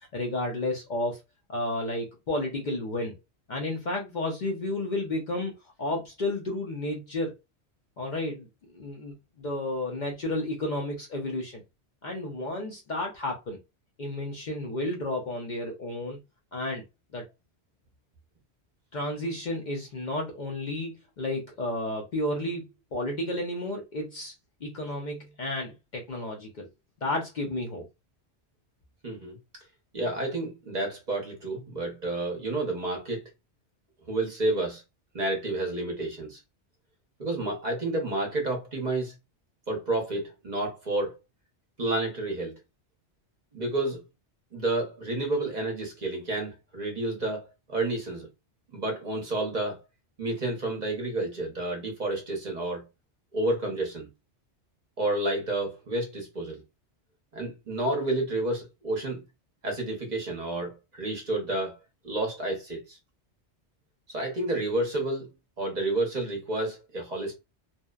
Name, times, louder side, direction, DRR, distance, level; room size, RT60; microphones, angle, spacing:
voice 1, 0.1-1.2 1.5-3.1 3.5-5.5 5.8-7.3 8.0-8.5 8.7-11.6 12.0-13.6 14.0-16.2 16.5-16.8 17.1-17.2 18.9-22.6 22.9-24.3 24.6-26.7 27.0-27.8, left 1 dB, 55° left, 0.6 m, -32 dB
voice 2, 29.0-29.4 29.9-33.2 34.1-34.8 35.1-36.4 37.2-39.1 39.7-41.2 41.8-42.5 43.5-44.0 44.5-48.3 48.7-49.8 50.2-52.9 53.3-54.1 55.0-56.6 57.3-59.2 59.6-61.8 62.0-63.0 64.1-65.3 65.6-67.4, right 2 dB, 45° right, 0.8 m, -30 dB
2.7 x 2.0 x 2.3 m
omnidirectional pair, 1.2 m